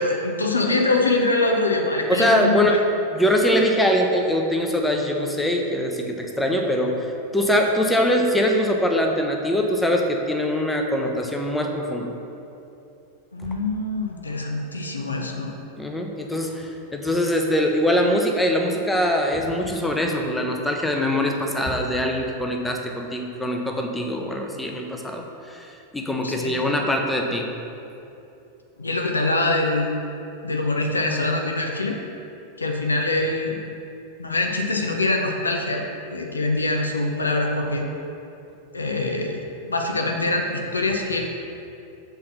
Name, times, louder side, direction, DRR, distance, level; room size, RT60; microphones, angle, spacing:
voice 1, 0.0-2.8 13.3-15.6 26.2-26.6 28.8-29.9 30.4-32.0 32.6-33.6 34.2-35.8 36.1-37.9 38.7-41.3, left 2 dB, 80° left, 2 dB, 0.7 m, -24 dB
voice 2, 2.1-2.8 3.1-12.1 15.8-27.5, equal, 5° left, 2 dB, 0.7 m, -23 dB
5.8 x 4.3 x 5.6 m, 2.8 s
figure-of-eight pair, 90°, 0 cm